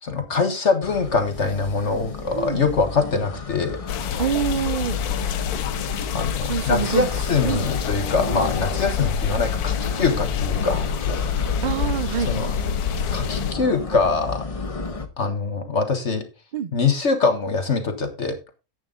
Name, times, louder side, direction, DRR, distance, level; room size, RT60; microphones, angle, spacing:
voice 1, 0.0-3.8 6.1-10.9 12.3-12.5 13.1-14.4 15.2-16.2 16.7-18.4, left 4 dB, 50° left, 1.5 m, -23 dB
sound 1, 0.8-15.1, left 3 dB, 25° left, 1.1 m, -33 dB
sound 2, 3.9-13.5, left 8 dB, 90° left, 1.3 m, -27 dB
voice 2, 4.2-5.0 6.5-7.1 7.5-7.6 8.3-8.4 11.6-12.3 16.5-16.7, right 8 dB, 65° right, 0.4 m, -25 dB
10.5 x 8.1 x 3.7 m
omnidirectional pair, 1.5 m